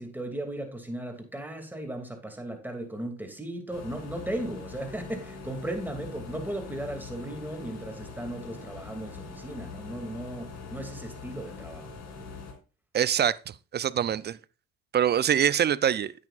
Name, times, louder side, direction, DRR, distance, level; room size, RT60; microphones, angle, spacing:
voice 1, 0.0-11.9, right 1 dB, 5° right, 2.5 m, -36 dB
sound 1, 3.7-12.5, left 4 dB, 55° left, 3.4 m, -43 dB
voice 2, 12.9-14.4 14.9-16.1, right 9 dB, 30° right, 0.5 m, -24 dB
9.6 x 8.7 x 2.5 m
supercardioid pair, 70°, 33 cm